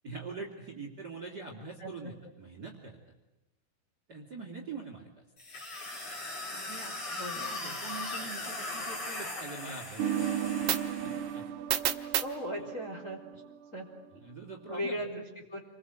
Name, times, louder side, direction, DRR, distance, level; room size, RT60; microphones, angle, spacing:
voice 1, 0.0-3.0 4.1-5.1 6.5-10.7 11.0-11.4 12.0-12.1 14.2-15.0, right 4 dB, 25° right, 1 dB, 3.1 m, -44 dB
voice 2, 1.8-2.1 7.2-7.8 12.2-13.9 14.7-15.6, equal, 20° left, 0 dB, 4.0 m, -38 dB
sound 1, 5.4-11.3, left 2 dB, 40° left, 4.7 m, -39 dB
sound 2, 10.0-13.6, right 10 dB, 80° right, 3.1 m, -32 dB
28.5 x 22.0 x 8.0 m, 1.0 s
omnidirectional pair, 4.7 m